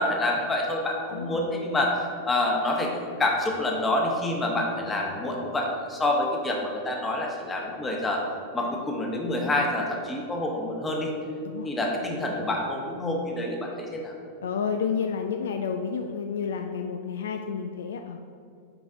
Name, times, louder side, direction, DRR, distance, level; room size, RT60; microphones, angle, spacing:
voice 1, 0.0-8.2 8.5-11.1 11.6-14.1, left 1 dB, 15° left, 0 dB, 1.1 m, -27 dB
voice 2, 14.4-18.2, left 6 dB, 65° left, 6 dB, 0.3 m, -30 dB
7.6 x 4.7 x 3.6 m, 2.4 s
figure-of-eight pair, 90°, 0 cm